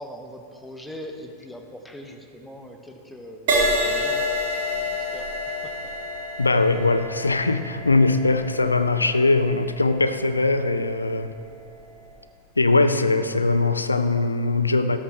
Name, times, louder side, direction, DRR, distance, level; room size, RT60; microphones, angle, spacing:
voice 1, 0.0-5.7, equal, 5° left, 3 dB, 1.1 m, -41 dB
Crash cymbal, 3.5-11.1 11.8-12.1, left 1 dB, 50° right, 2.5 m, -28 dB
voice 2, 6.4-11.3 12.6-15.0, left 3 dB, 80° left, 10 dB, 0.5 m, -21 dB
13.5 x 13.0 x 3.2 m, 2.4 s
figure-of-eight pair, 90°, 0 cm